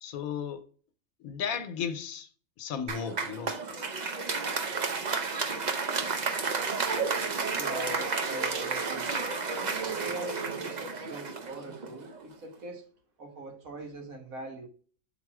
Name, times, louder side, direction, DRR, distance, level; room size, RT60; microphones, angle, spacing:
voice 1, 0.0-0.6 1.2-2.3 2.6-3.6, left 7 dB, 90° left, 1.2 m, -35 dB
Applause, 2.9-12.2, right 4 dB, 40° right, 0.7 m, -32 dB
voice 2, 7.5-9.1 9.5-12.8 13.2-14.7, right 2 dB, 85° right, 1.8 m, -42 dB
6.8 x 4.1 x 4.8 m
omnidirectional pair, 1.4 m